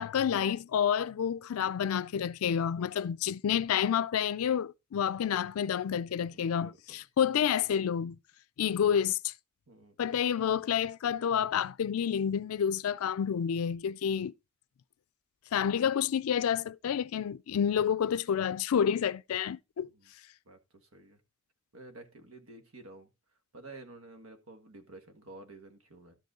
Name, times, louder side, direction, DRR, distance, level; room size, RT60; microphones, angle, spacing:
voice 1, 0.0-8.2 8.6-9.3 10.0-14.3 15.5-19.9, left 8 dB, 85° left, 0.4 m, -29 dB
voice 2, 6.3-7.0 9.7-10.0 19.8-20.1 20.4-21.2 21.7-23.1 23.5-26.2, right 2 dB, 75° right, 1.5 m, -51 dB
12.5 x 5.3 x 3.7 m
head